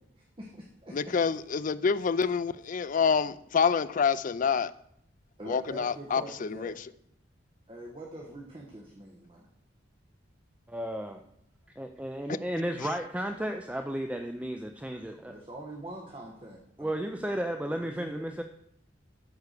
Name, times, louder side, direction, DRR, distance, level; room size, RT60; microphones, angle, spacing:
voice 1, 0.0-1.1 5.4-6.8 7.7-9.5 15.3-16.9 17.6-18.3, right 1 dB, 30° right, 1.4 m, -44 dB
voice 2, 0.9-4.7 5.4-6.7, left 6 dB, 45° left, 0.4 m, -27 dB
voice 3, 10.7-11.2 11.8-15.3 16.8-18.4, right 1 dB, 5° right, 0.5 m, -33 dB
13.0 x 4.8 x 6.6 m
head